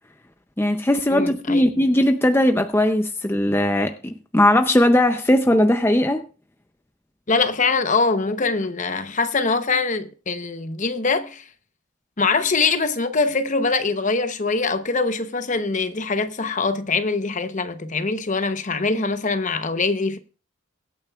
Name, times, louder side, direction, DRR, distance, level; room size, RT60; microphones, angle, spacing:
voice 1, 0.6-6.2, left 1 dB, 10° left, 0.5 m, -19 dB
voice 2, 1.1-1.7 7.3-11.4 12.2-20.2, left 4 dB, 40° left, 0.8 m, -23 dB
23.0 x 8.9 x 2.4 m
head